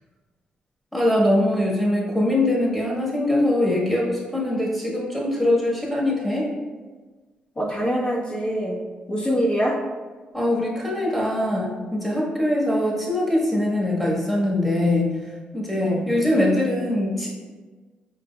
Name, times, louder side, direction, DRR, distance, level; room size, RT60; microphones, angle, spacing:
voice 1, 0.9-6.5 10.3-15.1 15.5-17.3, left 1 dB, 5° left, -4 dB, 1.4 m, -22 dB
voice 2, 7.6-8.8 9.1-9.8 15.8-16.1, equal, 35° left, -4 dB, 1.2 m, -24 dB
5.0 x 3.9 x 2.3 m, 1.4 s
cardioid pair, 75°, 3 cm